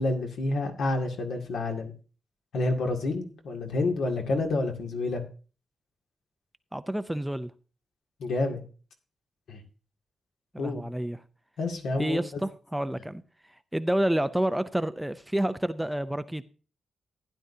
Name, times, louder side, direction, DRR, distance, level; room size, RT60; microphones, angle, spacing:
voice 1, 0.0-1.9 2.5-5.2 8.2-8.6 9.5-9.6 10.6-10.8 11.6-12.2, left 2 dB, 75° left, 2.2 m, -29 dB
voice 2, 6.7-7.5 10.5-11.2 12.0-13.2 13.7-16.4, right 1 dB, 5° right, 0.4 m, -29 dB
16.0 x 10.5 x 2.7 m
wide cardioid pair, 165°, 0 cm